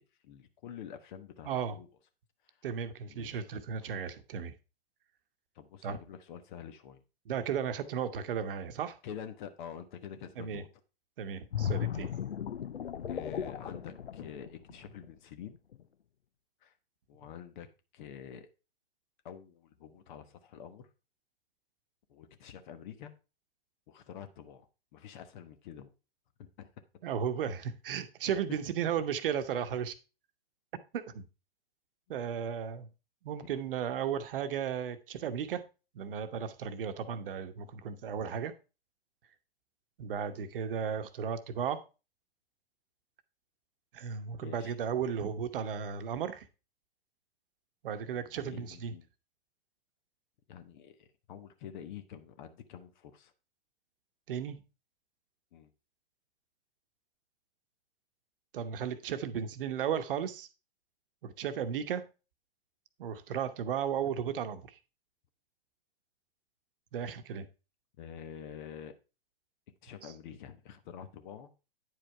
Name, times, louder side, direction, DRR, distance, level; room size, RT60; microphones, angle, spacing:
voice 1, 0.0-1.9 3.1-3.5 3.8-3.9 5.5-7.0 9.0-10.7 13.1-15.5 16.6-16.7 17.1-17.7 17.9-18.5 19.2-20.9 22.1-23.1 23.9-25.9 26.4-26.7 33.4-33.5 44.4-44.7 48.1-49.1 50.5-53.3 55.5-55.7 68.0-69.0 69.8-71.5, left 8 dB, 50° left, 1.2 m, -47 dB
voice 2, 1.4-1.8 2.6-4.5 5.8-6.0 7.3-9.0 10.4-10.6 11.2-12.1 27.0-29.9 30.9-31.3 32.1-32.9 33.2-35.6 35.9-38.5 40.0-41.8 43.9-46.5 47.8-48.9 54.3-54.6 58.5-60.5 61.2-62.0 63.0-64.7 66.9-67.5 70.0-70.1, right 8 dB, 65° right, 1.0 m, -35 dB
sound 1, 11.5-15.1 15.5-15.8, left 9 dB, 85° left, 0.6 m, -36 dB
9.4 x 4.9 x 4.5 m
hypercardioid pair, 110°, 30 cm